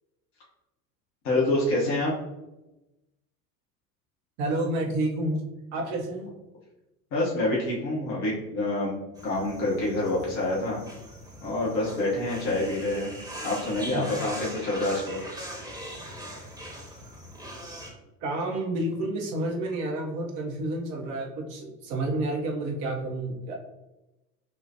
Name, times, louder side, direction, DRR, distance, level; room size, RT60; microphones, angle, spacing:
voice 1, 1.2-2.1 7.1-9.0 9.2-10.8 11.4-13.1 13.4-15.2, left 2 dB, 50° left, -5 dB, 1.3 m, -27 dB
voice 2, 4.4-5.4 5.7-6.3 13.9-14.0 18.2-23.5, right 1 dB, 50° right, 1 dB, 1.1 m, -30 dB
sound 1, 9.2-17.9, right 1 dB, 10° right, 1.2 m, -41 dB
6.6 x 2.4 x 2.8 m, 0.99 s
figure-of-eight pair, 65°, 47 cm